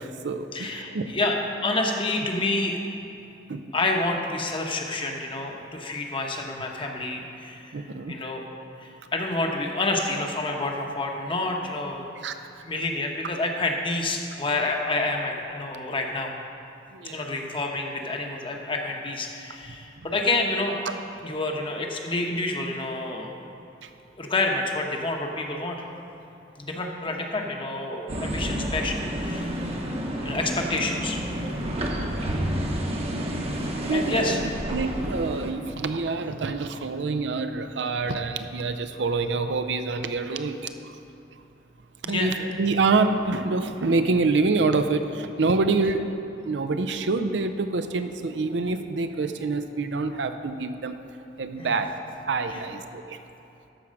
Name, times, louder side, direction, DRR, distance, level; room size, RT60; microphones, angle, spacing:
voice 1, 0.0-1.1 3.5-3.6 7.7-8.2 12.2-12.3 16.9-17.3 23.8-23.9 33.9-34.4 34.7-41.0 42.1-46.1 46.4-50.9 51.4-52.0 52.2-53.2, right 3 dB, 75° right, 8 dB, 0.5 m, -26 dB
voice 2, 0.5-2.8 3.7-8.4 8.8-12.0 12.6-16.3 17.0-20.9 21.2-23.3 24.2-25.8 26.6-29.9 30.2-31.2 33.9-34.4 42.0-42.3 51.6-51.8 52.5-52.6, left 2 dB, 30° left, 1 dB, 1.0 m, -28 dB
sound 1, 28.1-35.5, equal, 35° right, 1.0 m, -30 dB
13.0 x 4.7 x 6.3 m, 2.8 s
head